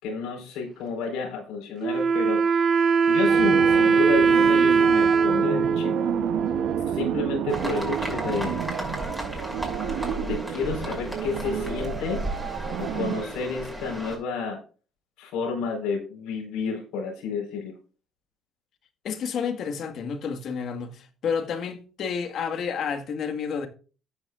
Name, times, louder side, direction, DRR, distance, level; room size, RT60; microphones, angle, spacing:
voice 1, 0.0-2.4 3.1-5.9 6.9-8.6 10.2-12.2 12.8-14.6 15.2-17.7, left 4 dB, 80° left, 4.5 m, -30 dB
Wind instrument woodwind instrument, 1.8-7.3, right 5 dB, 50° right, 1.5 m, -21 dB
sound 1, 3.3-13.2, right 11 dB, 80° right, 0.8 m, -31 dB
sound 2, 7.5-14.2, right 1 dB, ahead, 6.3 m, -33 dB
voice 2, 19.0-23.7, left 6 dB, 65° left, 1.8 m, -30 dB
13.5 x 9.6 x 2.5 m
cardioid pair, 90°, 0 cm